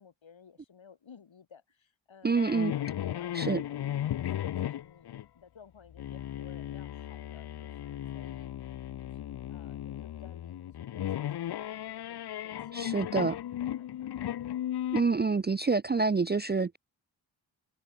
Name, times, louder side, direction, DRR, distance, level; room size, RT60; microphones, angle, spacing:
voice 1, 0.0-8.5 9.0-9.2 9.5-13.3 13.7-14.6, left 6 dB, 75° left, 7.4 m, -56 dB
voice 2, 2.2-2.7 3.3-3.6 12.7-13.4 14.9-16.8, right 4 dB, 20° right, 0.5 m, -27 dB
sound 1, 2.3-5.2 5.9-15.0, left 11 dB, 55° left, 0.6 m, -36 dB
wide cardioid pair, 85°, 47 cm